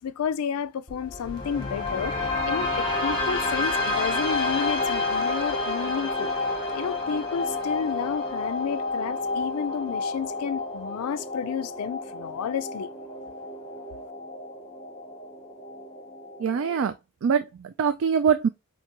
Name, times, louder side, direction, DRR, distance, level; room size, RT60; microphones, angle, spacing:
voice 1, 0.0-6.3 6.7-12.9, left 7 dB, 75° left, 0.4 m, -31 dB
sound 1, 0.9-16.9, left 2 dB, 20° left, 1.3 m, -30 dB
voice 2, 16.4-16.9 17.2-18.5, right 7 dB, 60° right, 0.3 m, -23 dB
4.5 x 2.9 x 2.9 m
head